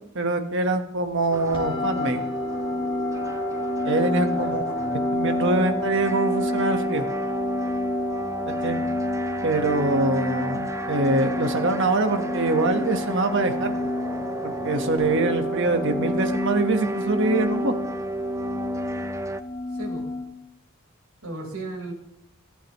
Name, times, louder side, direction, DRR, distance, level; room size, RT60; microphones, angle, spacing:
voice 1, 0.1-2.2 3.8-4.7 5.1-7.1 8.5-8.8 9.4-13.7 14.4-17.7, right 2 dB, 60° right, 6 dB, 1.4 m, -24 dB
sound 1, 1.3-19.4, right 1 dB, 15° right, 0.4 m, -32 dB
sound 2, 1.5-20.2, left 2 dB, 25° left, 3.3 m, -30 dB
voice 2, 4.3-5.0 19.7-20.1 21.2-21.9, right 2 dB, 90° right, 1 dB, 4.3 m, -36 dB
26.0 x 11.0 x 3.1 m, 0.83 s
head